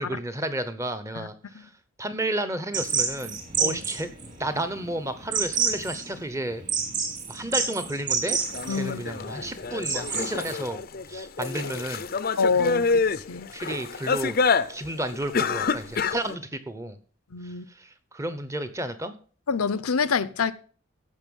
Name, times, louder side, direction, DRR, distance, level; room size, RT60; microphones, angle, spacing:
voice 1, 0.0-1.7 2.0-4.1 4.4-6.6 7.3-8.4 8.7-10.8 11.1-12.1 13.5-14.4 14.7-17.0 17.4-17.5 17.8-19.1, right 1 dB, 15° right, 0.8 m, -32 dB
sound 1, 2.7-10.5, right 5 dB, 35° right, 2.6 m, -29 dB
sound 2, 8.3-16.3, left 4 dB, 45° left, 0.6 m, -27 dB
voice 2, 8.7-9.1 12.4-13.0 13.3-13.5 17.3-17.6 19.5-20.5, left 5 dB, 90° left, 0.7 m, -26 dB
15.0 x 5.5 x 5.3 m
head